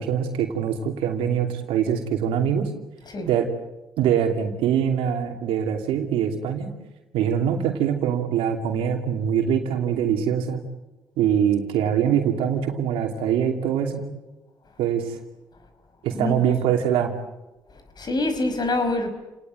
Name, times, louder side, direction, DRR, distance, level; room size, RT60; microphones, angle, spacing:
voice 1, 0.0-2.7 3.2-3.5 4.0-6.7 7.1-10.6 11.2-14.0 14.8-15.2 16.0-17.1, right 8 dB, 80° right, 4 dB, 2.8 m, -23 dB
voice 2, 16.1-16.4 18.0-19.1, left 2 dB, 50° left, 8 dB, 5.1 m, -25 dB
29.5 x 19.0 x 9.1 m, 1.1 s
supercardioid pair, 50°, 9 cm